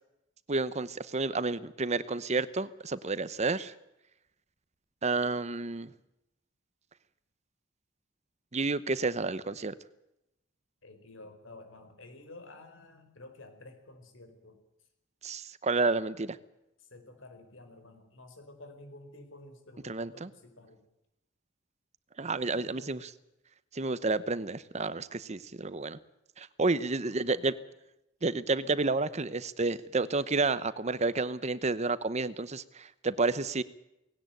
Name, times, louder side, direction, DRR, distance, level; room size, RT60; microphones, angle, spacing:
voice 1, 0.5-3.7 5.0-5.9 8.5-9.7 15.2-16.4 19.8-20.3 22.2-23.0 23.7-26.0 26.4-27.5 28.2-33.6, right 3 dB, 35° right, 15 dB, 0.9 m, -30 dB
voice 2, 10.8-14.6 16.8-20.8 22.2-23.1 27.0-27.6 29.0-29.2, left 2 dB, 80° left, 7 dB, 4.6 m, -51 dB
19.0 x 17.5 x 9.1 m, 0.88 s
head